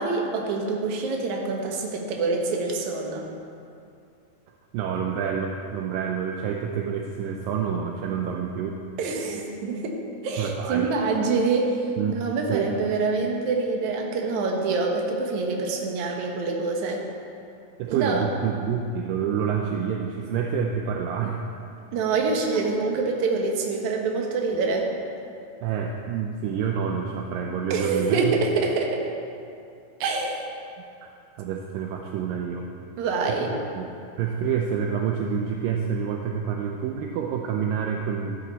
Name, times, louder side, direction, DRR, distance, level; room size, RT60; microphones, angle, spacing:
voice 1, 0.0-3.2 9.0-9.9 10.2-11.8 12.1-17.0 17.9-18.2 21.9-24.9 27.7-29.0 30.0-30.4 33.0-33.5, right 4 dB, 60° right, 1 dB, 2.2 m, -26 dB
voice 2, 4.7-8.8 10.4-10.9 12.0-12.2 12.5-12.7 17.8-21.4 22.5-22.8 25.6-28.3 31.4-32.7 33.4-33.9 34.2-38.4, right 7 dB, 80° right, 2 dB, 2.1 m, -28 dB
13.5 x 10.0 x 4.1 m, 2.5 s
omnidirectional pair, 4.5 m